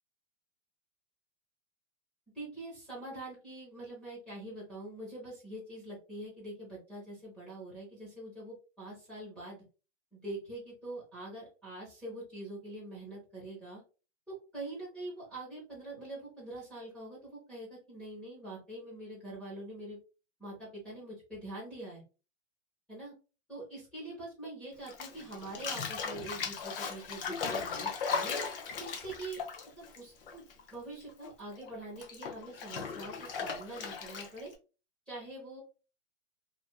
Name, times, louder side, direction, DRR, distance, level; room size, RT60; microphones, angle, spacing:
voice 1, 2.3-9.6 10.1-13.8 14.3-20.0 20.4-22.0 22.9-23.1 23.5-28.4 28.7-29.4 29.8-30.4 30.7-34.5 35.1-35.6, right 2 dB, 5° left, -8 dB, 0.9 m, -44 dB
Bathtub (filling or washing), 24.9-30.7 31.0-34.5, left 5 dB, 50° left, 0.5 m, -37 dB
2.5 x 2.3 x 2.3 m, 0.33 s
hypercardioid pair, 170°, 36 cm